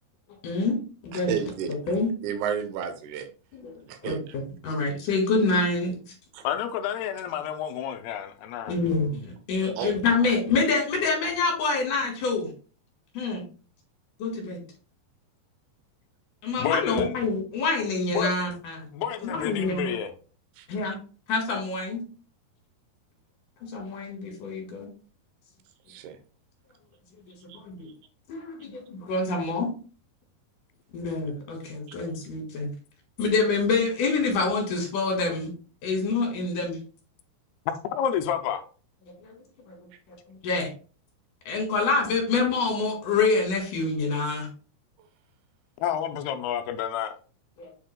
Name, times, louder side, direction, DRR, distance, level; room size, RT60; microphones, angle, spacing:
voice 1, 0.4-0.8 1.0-1.3 1.7-2.1 3.5-3.7 4.0-6.0 8.7-12.5 13.1-13.4 14.2-14.6 16.4-18.9 19.2-19.9 20.7-21.0 21.3-22.0 23.6-24.9 27.5-27.9 28.3-29.7 30.9-32.7 33.2-35.5 35.8-36.8 39.7-39.9 40.3-40.7 41.5-44.5 47.6-47.7, left 3 dB, 60° left, 3.1 m, -26 dB
voice 2, 1.1-1.7 2.2-3.3 3.9-4.2 6.3-6.4 9.8-9.9 20.6-20.7 25.9-26.2 27.5-27.6, right 8 dB, 85° right, 1.7 m, -31 dB
voice 3, 6.4-8.7 16.6-17.2 18.1-18.3 18.9-20.1 37.9-38.7 45.8-47.2, left 9 dB, 80° left, 2.5 m, -29 dB
7.7 x 6.1 x 2.2 m
omnidirectional pair, 4.7 m